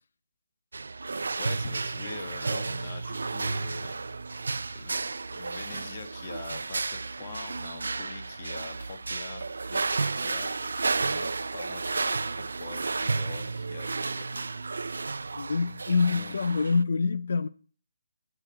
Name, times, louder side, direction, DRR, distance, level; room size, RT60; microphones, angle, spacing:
sound 1, 0.7-16.8, right 3 dB, 75° right, 0.4 m, -32 dB
voice 1, 1.4-3.9 4.7-9.4 9.7-14.5 15.9-16.3, left 4 dB, 30° left, 1.4 m, -43 dB
voice 2, 15.4-17.5, left 4 dB, 55° left, 0.6 m, -26 dB
9.0 x 8.1 x 4.6 m
hypercardioid pair, 170°, 0 cm